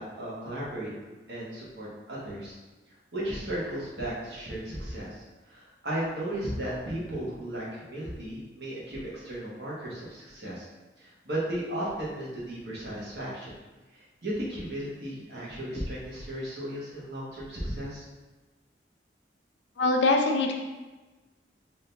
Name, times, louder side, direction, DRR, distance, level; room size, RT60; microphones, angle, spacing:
voice 1, 0.0-2.6 3.1-5.1 5.5-10.7 11.0-13.5 13.9-18.0, right 1 dB, 65° right, -7 dB, 1.4 m, -35 dB
voice 2, 19.8-20.5, left 2 dB, 80° left, 2 dB, 0.5 m, -23 dB
3.9 x 2.7 x 3.4 m, 1.2 s
head